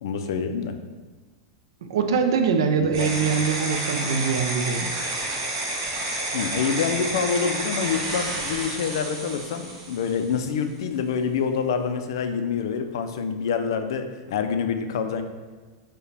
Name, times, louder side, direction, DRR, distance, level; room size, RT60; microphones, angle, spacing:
voice 1, 0.0-0.7 2.8-3.1 6.3-15.2, left 6 dB, 70° left, 7 dB, 0.3 m, -26 dB
voice 2, 1.8-4.9, right 6 dB, 85° right, 6 dB, 0.4 m, -23 dB
sound 1, 2.9-10.4, right 2 dB, 60° right, 1.0 m, -30 dB
4.6 x 2.2 x 3.3 m, 1.3 s
supercardioid pair, 170°, 2 cm